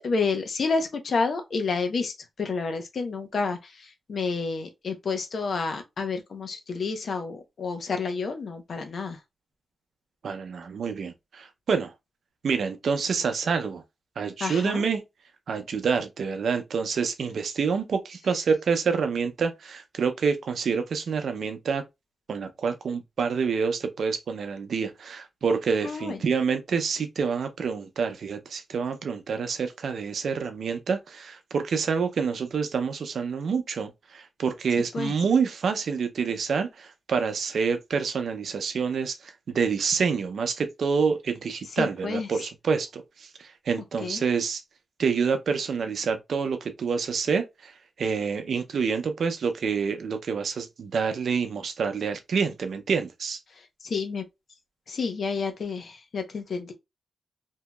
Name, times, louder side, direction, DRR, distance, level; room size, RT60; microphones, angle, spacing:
voice 1, 0.0-9.2 14.4-14.8 25.8-26.2 34.9-35.1 41.8-42.3 44.0-44.2 53.6-54.2 54.9-56.7, left 4 dB, 70° left, 0.7 m, -30 dB
voice 2, 10.2-11.9 12.4-13.8 14.2-15.0 15.5-21.8 22.3-44.6 45.0-47.7 48.0-53.4, right 5 dB, 80° right, 0.5 m, -27 dB
2.9 x 2.7 x 2.2 m
cardioid pair, 75°, 0 cm